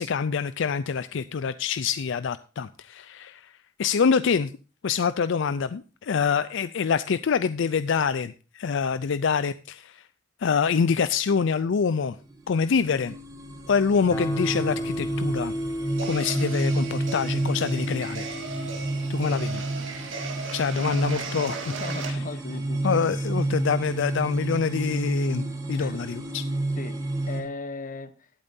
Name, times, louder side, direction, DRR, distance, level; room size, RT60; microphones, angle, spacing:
voice 1, 0.0-4.5 4.8-10.1 10.4-12.2 12.5-13.1 13.7-15.5 16.1-18.3 19.1-19.6 20.5-21.7 22.8-26.4, left 6 dB, 65° left, 13 dB, 0.4 m, -26 dB
sound 1, 12.1-27.4, right 2 dB, 20° right, 1.7 m, -31 dB
Guitar, 14.1-20.8, equal, 20° left, 1.8 m, -34 dB
sound 2, 15.9-22.1, right 4 dB, 70° right, 2.3 m, -37 dB
voice 2, 21.8-23.2 25.8-26.1 26.8-28.3, left 3 dB, 45° left, 12 dB, 1.0 m, -38 dB
18.5 x 8.9 x 2.7 m, 0.33 s
head